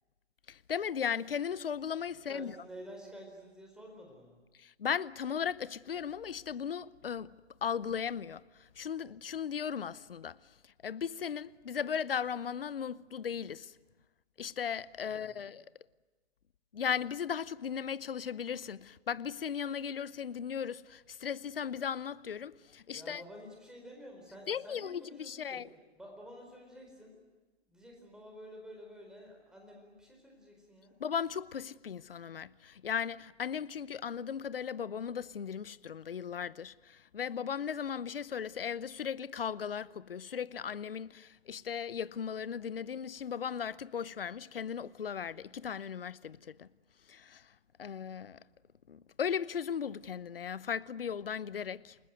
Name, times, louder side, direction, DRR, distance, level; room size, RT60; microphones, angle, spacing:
voice 1, 0.5-2.5 4.6-7.3 7.6-13.8 14.4-15.7 16.7-23.2 24.5-25.7 31.0-46.7 47.1-47.5 47.8-48.4 48.9-52.0, left 7 dB, 55° left, 0.8 m, -37 dB
voice 2, 2.1-4.4 15.0-15.5 22.9-25.6 26.0-27.2 27.7-31.0, equal, ahead, 4.4 m, -50 dB
28.5 x 20.5 x 9.4 m
figure-of-eight pair, 135°, 34 cm